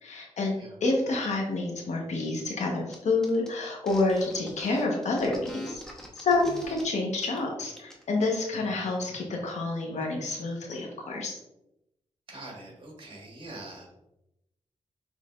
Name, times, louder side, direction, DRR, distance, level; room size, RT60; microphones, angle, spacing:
voice 1, 0.0-0.5 0.8-5.8 6.1-11.4, left 3 dB, 75° left, 0 dB, 1.1 m, -28 dB
sound 1, 2.9-3.0 3.2-6.8 7.2-7.4 7.7-8.2, equal, 5° left, 1.1 m, -45 dB
voice 2, 12.3-13.9, right 2 dB, 45° right, -1 dB, 1.7 m, -44 dB
6.4 x 3.3 x 2.5 m, 0.87 s
cardioid pair, 80°, 12 cm